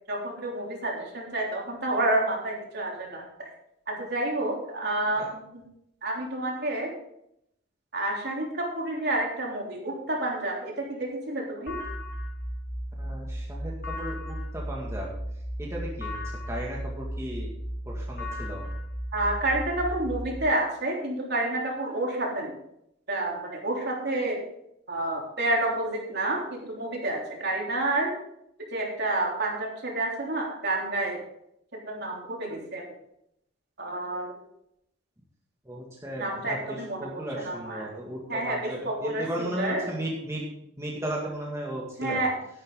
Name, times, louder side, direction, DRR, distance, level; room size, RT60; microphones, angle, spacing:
voice 1, 0.1-3.2 3.9-5.6 6.0-6.9 7.9-11.8 19.1-22.5 23.1-24.4 24.9-28.1 28.7-31.2 31.7-32.8 33.8-34.3 36.2-37.1 37.4-37.9 38.3-39.8 42.0-42.3, right 2 dB, 55° right, -1 dB, 3.4 m, -29 dB
sound 1, 11.7-20.3, equal, 45° left, 3.1 m, -35 dB
voice 2, 13.0-15.1 15.6-16.2 16.5-17.5 17.9-18.7 35.7-40.4 40.8-42.2, right 1 dB, 15° right, -3 dB, 2.1 m, -35 dB
12.5 x 11.0 x 3.8 m, 0.76 s
head